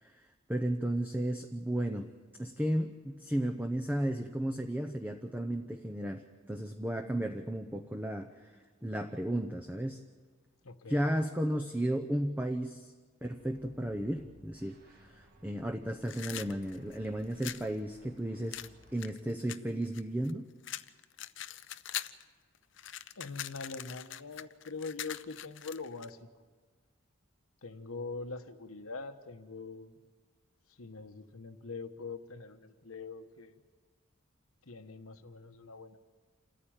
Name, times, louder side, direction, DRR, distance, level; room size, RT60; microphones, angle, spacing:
voice 1, 0.0-2.1 2.4-10.0 10.9-12.9 13.2-18.6 18.9-20.5, right 1 dB, 10° right, 4 dB, 0.7 m, -34 dB
voice 2, 10.6-11.1 23.2-26.3 27.6-30.0 30.7-33.6 34.6-36.0, left 4 dB, 85° left, 9 dB, 1.2 m, -43 dB
sound 1, 13.4-19.0, equal, 45° right, 2.1 m, -60 dB
sound 2, 16.0-17.7 18.5-20.3 20.6-22.2 22.5-26.1, left 12 dB, 60° left, 0.6 m, -42 dB
28.0 x 14.0 x 8.9 m, 1.5 s
head